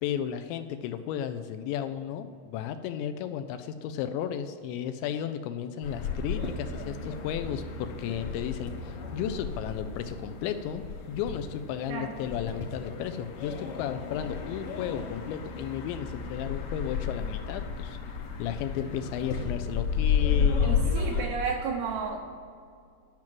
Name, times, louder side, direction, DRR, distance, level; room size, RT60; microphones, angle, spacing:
voice 1, 0.0-18.0 18.4-20.9, left 9 dB, 85° left, 9 dB, 2.7 m, -34 dB
sound 1, 5.8-21.3, left 6 dB, 65° left, 2.2 m, -32 dB
voice 2, 20.6-22.2, right 5 dB, 80° right, -1 dB, 2.2 m, -32 dB
10.5 x 6.0 x 7.6 m, 2.3 s
omnidirectional pair, 5.5 m